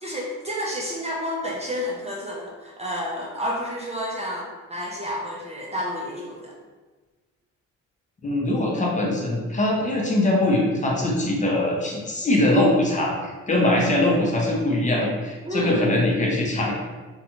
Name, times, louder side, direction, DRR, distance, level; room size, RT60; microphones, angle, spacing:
voice 1, 0.0-6.5 15.5-15.9, equal, 20° right, -3 dB, 0.4 m, -30 dB
voice 2, 8.2-16.7, left 1 dB, 25° left, -2 dB, 0.6 m, -22 dB
2.5 x 2.2 x 2.9 m, 1.3 s
cardioid pair, 90°, 30 cm